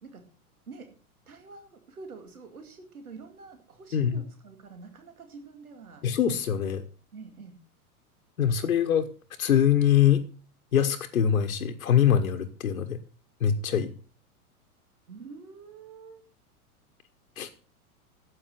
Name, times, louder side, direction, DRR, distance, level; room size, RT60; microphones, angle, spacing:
voice 1, 1.3-6.0 7.1-7.6 15.1-16.2, right 4 dB, 70° right, 7 dB, 2.4 m, -46 dB
voice 2, 3.9-4.2 6.0-6.8 8.4-9.1 9.4-10.2 10.7-13.0 13.4-13.9 17.4-17.5, left 9 dB, 65° left, 6 dB, 1.3 m, -23 dB
12.5 x 8.3 x 6.6 m, 0.40 s
figure-of-eight pair, 95°, 44 cm